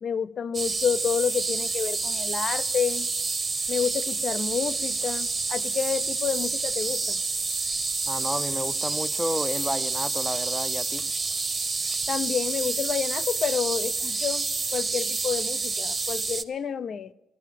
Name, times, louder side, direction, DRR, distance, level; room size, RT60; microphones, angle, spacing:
voice 1, 0.0-3.1 3.7-7.2 12.1-17.1, left 7 dB, 50° left, 0.5 m, -29 dB
sound 1, 0.5-16.4, right 3 dB, 30° right, 1.0 m, -28 dB
voice 2, 8.1-11.1, equal, 5° left, 0.6 m, -31 dB
14.0 x 13.0 x 7.4 m
supercardioid pair, 65°, 0 cm